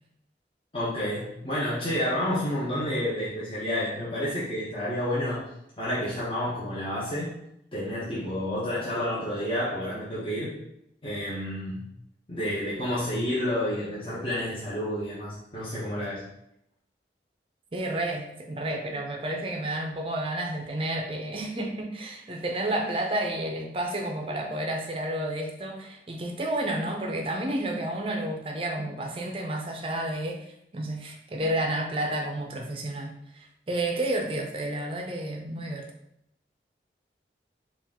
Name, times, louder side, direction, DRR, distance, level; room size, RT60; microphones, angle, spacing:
voice 1, 0.7-5.5 5.8-7.4 7.7-10.6 11.0-11.9 12.3-16.2, left 1 dB, 30° left, -9 dB, 0.9 m, -30 dB
voice 2, 17.7-35.9, right 1 dB, 30° right, 2 dB, 0.5 m, -31 dB
4.4 x 2.5 x 3.6 m, 0.79 s
head